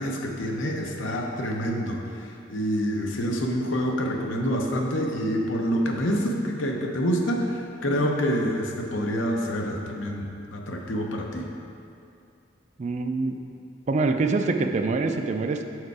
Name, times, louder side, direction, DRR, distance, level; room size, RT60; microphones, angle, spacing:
voice 1, 0.0-11.5, equal, 85° left, 1 dB, 0.8 m, -27 dB
voice 2, 12.8-13.4 13.9-15.6, right 3 dB, 35° right, 6 dB, 0.3 m, -25 dB
6.5 x 4.6 x 4.7 m, 2.6 s
head